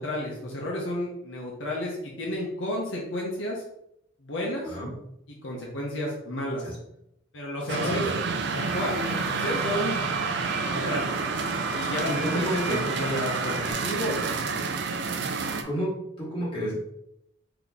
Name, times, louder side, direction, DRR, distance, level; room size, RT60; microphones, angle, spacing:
voice 1, 0.0-3.6 4.2-4.8 5.4-6.7 7.3-8.1 8.5-9.9 10.6-11.2 11.7-14.7, left 1 dB, 65° left, -3 dB, 0.8 m, -31 dB
voice 2, 7.7-8.2 11.6-12.8 15.6-16.7, right 1 dB, 25° left, -7 dB, 1.5 m, -32 dB
sound 1, 7.7-15.6, right 5 dB, 55° right, 0.4 m, -29 dB
sound 2, 8.6-13.7, right 1 dB, 20° right, 1.0 m, -38 dB
3.9 x 2.9 x 3.5 m, 0.79 s
head